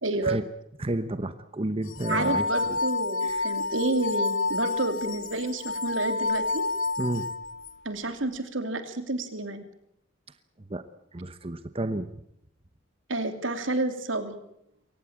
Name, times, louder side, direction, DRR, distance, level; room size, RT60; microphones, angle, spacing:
voice 1, 0.0-0.4 2.1-6.6 7.8-9.6 13.1-14.4, right 2 dB, 80° right, 8 dB, 3.0 m, -30 dB
voice 2, 0.8-2.8 3.2-3.5 7.0-7.3 10.7-10.8 11.1-12.1, right 1 dB, 30° right, 11 dB, 1.0 m, -31 dB
sound 1, 1.9-7.7, left 3 dB, 75° left, 1.0 m, -29 dB
23.0 x 18.5 x 8.8 m, 0.76 s
head